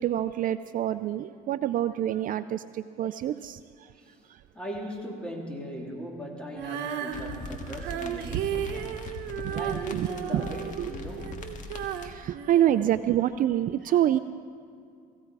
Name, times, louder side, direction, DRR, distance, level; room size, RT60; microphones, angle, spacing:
voice 1, 0.0-3.9 4.3-4.4 9.4-9.5 9.9-10.1 10.3-10.4 10.8-10.9 12.0-14.2, right 11 dB, 55° right, 13 dB, 0.4 m, -27 dB
voice 2, 4.5-9.1 9.5-11.4 13.8-14.0, equal, 5° left, -2 dB, 2.9 m, -39 dB
Female singing, 6.5-13.6, right 9 dB, 85° right, 1.0 m, -35 dB
sound 1, 7.1-12.1, left 3 dB, 50° left, 1.7 m, -41 dB
17.0 x 16.0 x 4.8 m, 2.4 s
cardioid pair, 110°, 17 cm